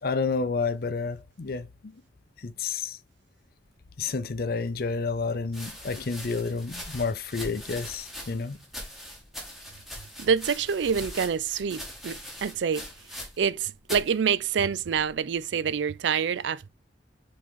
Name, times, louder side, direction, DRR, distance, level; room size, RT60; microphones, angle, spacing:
voice 1, 0.0-1.9 2.4-3.0 4.0-8.6, left 4 dB, 50° left, 0.5 m, -30 dB
sound 1, 5.5-13.6 13.8-14.1 14.9-15.3, equal, ahead, 1.8 m, -41 dB
voice 2, 10.2-12.9 13.4-16.7, right 7 dB, 75° right, 0.4 m, -27 dB
6.1 x 4.3 x 3.7 m
head